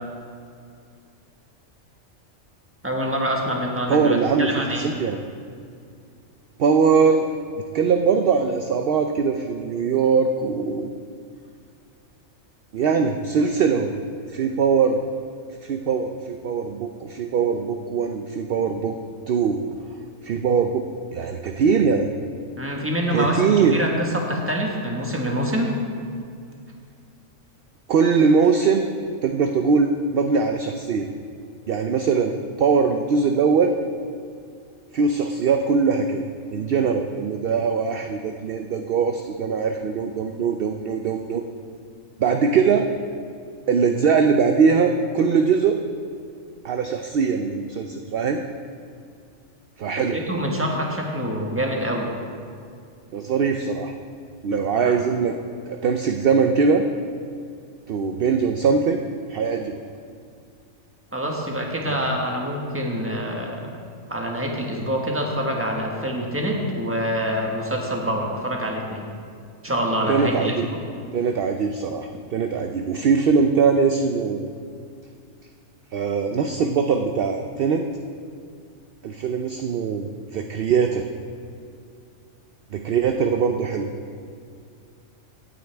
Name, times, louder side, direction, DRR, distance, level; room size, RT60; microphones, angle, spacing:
voice 1, 2.8-4.9 22.6-25.7 50.1-52.1 54.8-55.0 61.1-63.6 64.1-69.1 69.6-70.8, equal, 10° right, 0 dB, 1.4 m, -26 dB
voice 2, 3.9-5.2 6.6-7.3 7.7-10.9 12.7-13.9 14.3-15.1 15.6-19.0 19.3-19.6 20.2-20.9 21.1-22.1 23.1-23.8 27.9-28.9 29.2-31.1 31.7-33.8 34.9-36.3 36.5-41.4 42.2-42.9 43.7-45.8 46.6-48.4 49.8-50.2 53.1-53.9 54.4-55.4 55.7-56.9 57.9-59.0 59.3-59.8 61.9-62.0 70.1-70.7 71.1-74.5 75.9-77.9 79.0-81.1 82.7-83.9, right 5 dB, 60° right, 5 dB, 0.7 m, -21 dB
17.0 x 8.8 x 3.4 m, 2.3 s
omnidirectional pair, 1.4 m